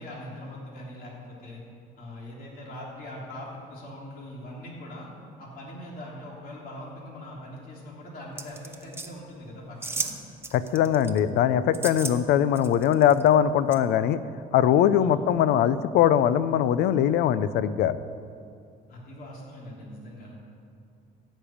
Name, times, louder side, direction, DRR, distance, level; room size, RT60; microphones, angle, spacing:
voice 1, 0.0-1.6 2.0-5.1 5.4-10.1 15.0-15.2 18.9-20.3, left 1 dB, 60° left, -4 dB, 3.4 m, -41 dB
sound 1, 8.4-9.1 9.8-10.2 10.4-11.2 11.7-12.1 12.5-13.3 13.7-13.8, right 3 dB, 15° right, 0.9 m, -34 dB
voice 2, 10.5-14.2 14.5-18.0, left 10 dB, 80° left, 15 dB, 0.5 m, -21 dB
15.5 x 5.4 x 8.6 m, 2.4 s
cardioid pair, 110°, 17 cm